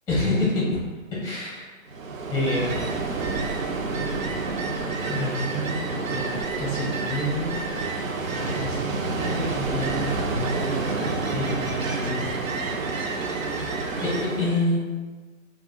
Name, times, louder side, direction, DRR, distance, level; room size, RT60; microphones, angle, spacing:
voice 1, 0.1-0.6 1.2-1.8 2.3-2.8 5.1-7.7 8.3-12.3 13.3-14.8, left 1 dB, 5° left, -7 dB, 0.6 m, -29 dB
Ocean, 1.9-14.7, right 3 dB, 75° right, 0.5 m, -28 dB
2.4 x 2.4 x 3.7 m, 1.3 s
figure-of-eight pair, 130°, 41 cm